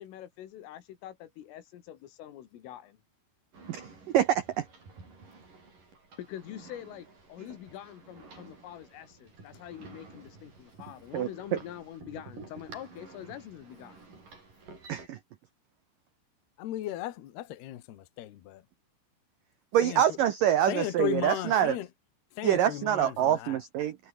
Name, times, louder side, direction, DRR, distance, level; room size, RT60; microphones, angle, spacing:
voice 1, 0.0-3.0 6.2-14.0, left 12 dB, 90° left, 4.8 m, -45 dB
sound 1, 3.5-15.1, right 3 dB, 40° right, 9.6 m, -51 dB
voice 2, 4.1-4.7 11.1-11.6 14.9-15.2 19.7-21.8 22.4-24.0, right 11 dB, 80° right, 1.9 m, -25 dB
voice 3, 16.6-18.6 19.8-20.0 20.7-21.9 22.4-23.6, left 13 dB, 65° left, 3.3 m, -35 dB
omnidirectional pair, 5.6 m